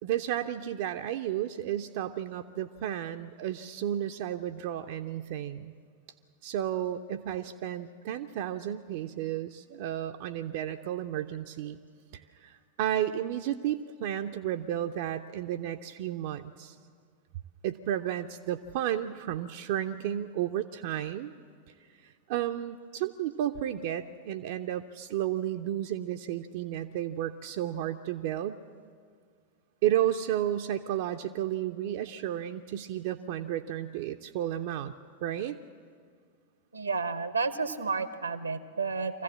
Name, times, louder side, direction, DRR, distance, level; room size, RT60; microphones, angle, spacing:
voice 1, 0.0-5.7 6.4-11.8 12.1-16.8 17.6-21.3 22.0-28.6 29.8-34.9 35.2-35.6, right 11 dB, 50° right, 6 dB, 0.5 m, -32 dB
voice 2, 36.7-39.2, right 4 dB, 80° right, 13 dB, 0.9 m, -31 dB
24.5 x 15.0 x 7.3 m, 2.1 s
figure-of-eight pair, 90°, 0 cm